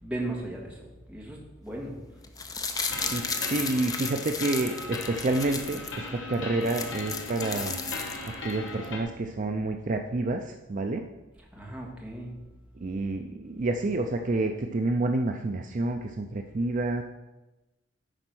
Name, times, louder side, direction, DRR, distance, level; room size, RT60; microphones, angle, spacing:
voice 1, 0.0-2.0 11.5-12.3, right 1 dB, 5° right, -2 dB, 1.6 m, -36 dB
sound 1, 2.2-5.9 6.3-6.4 6.6-8.5 8.8-8.9, left 5 dB, 20° left, 0.5 m, -34 dB
sound 2, 2.9-9.0, left 2 dB, 70° left, 1.3 m, -38 dB
voice 2, 3.0-7.9 8.4-11.0 12.8-17.0, right 2 dB, 40° right, 5 dB, 0.4 m, -29 dB
9.9 x 4.2 x 6.1 m, 1.0 s
head